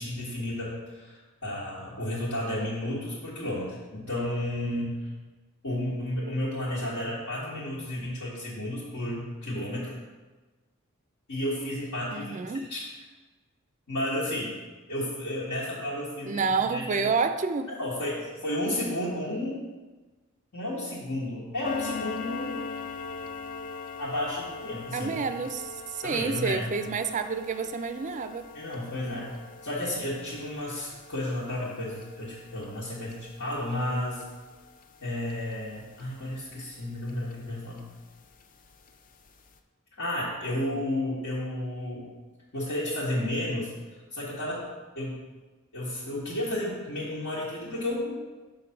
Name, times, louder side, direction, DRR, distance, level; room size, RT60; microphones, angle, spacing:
voice 1, 0.0-5.1 5.6-9.9 11.3-12.4 12.7-12.8 13.9-14.6 14.9-17.1 17.8-19.6 20.5-22.6 24.0-25.1 26.0-26.7 28.5-29.3 29.6-34.2 35.0-37.9 40.0-42.1 42.5-43.7 44.1-44.7 44.9-45.2 45.7-48.2, left 1 dB, 70° left, -8 dB, 1.4 m, -32 dB
voice 2, 12.1-12.7 16.3-17.7 24.9-28.5, right 5 dB, 35° right, 9 dB, 0.3 m, -29 dB
sound 1, 21.6-36.7 37.1-37.3 37.8-37.9 38.3-38.4 38.9-39.0 39.3-39.4, left 4 dB, 40° left, 0.4 m, -41 dB
5.3 x 4.0 x 5.7 m, 1.3 s
head